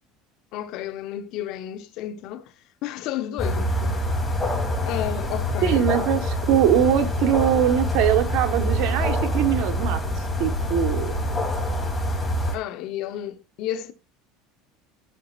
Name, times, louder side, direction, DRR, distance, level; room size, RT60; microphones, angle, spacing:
voice 1, 0.5-2.5 2.8-4.0 4.8-5.9 12.5-13.9, left 11 dB, 60° left, 0.9 m, -32 dB
sound 1, 3.4-12.6, equal, 15° left, 3.1 m, -25 dB
voice 2, 5.6-10.0 10.4-11.1, right 10 dB, 60° right, 1.3 m, -22 dB
14.5 x 5.6 x 2.5 m
hypercardioid pair, 85°, 0 cm